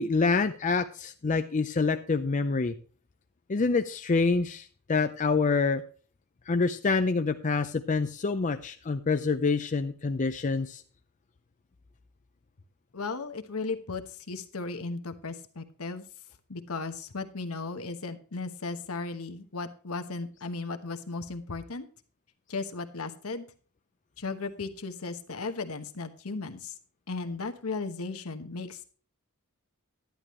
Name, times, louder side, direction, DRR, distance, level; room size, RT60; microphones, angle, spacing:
voice 1, 0.0-2.7 3.5-5.8 6.5-10.8, left 4 dB, 35° left, 8 dB, 0.5 m, -26 dB
voice 2, 12.9-16.0 16.5-21.8 22.5-23.5 24.2-26.7 27.1-28.8, left 3 dB, 70° left, 7 dB, 1.2 m, -36 dB
11.0 x 10.5 x 3.1 m, 0.40 s
head